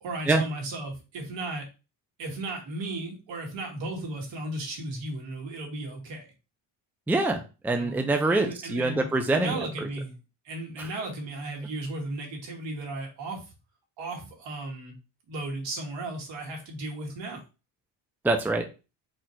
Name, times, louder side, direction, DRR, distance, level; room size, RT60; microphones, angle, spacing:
voice 1, 0.0-1.6 2.2-6.3 7.7-8.0 8.3-10.1 10.4-13.4 14.0-15.0 15.3-17.4, right 2 dB, 70° right, 0 dB, 2.1 m, -35 dB
voice 2, 7.1-9.9 10.8-10.9 18.2-18.7, right 2 dB, 5° right, 5 dB, 0.5 m, -25 dB
4.4 x 2.5 x 4.4 m, 0.30 s
cardioid pair, 115°, 46 cm